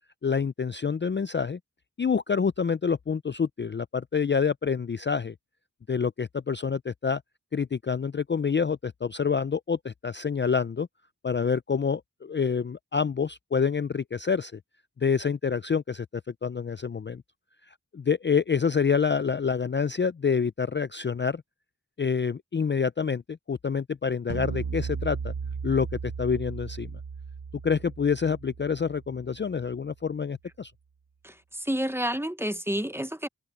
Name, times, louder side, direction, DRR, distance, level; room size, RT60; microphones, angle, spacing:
voice 1, 0.2-1.6 2.0-5.3 5.9-7.2 7.5-10.9 11.2-14.6 15.0-16.1 16.4-17.2 17.9-21.4 22.0-25.3 25.6-25.9 26.2-26.9 27.6-30.7, left 6 dB, 35° left, 0.4 m, -27 dB
sound 1, 24.3-29.6, right 5 dB, 70° right, 1.1 m, -36 dB
voice 2, 31.2-33.3, equal, 5° right, 0.8 m, -30 dB
wide cardioid pair, 50°, 35 cm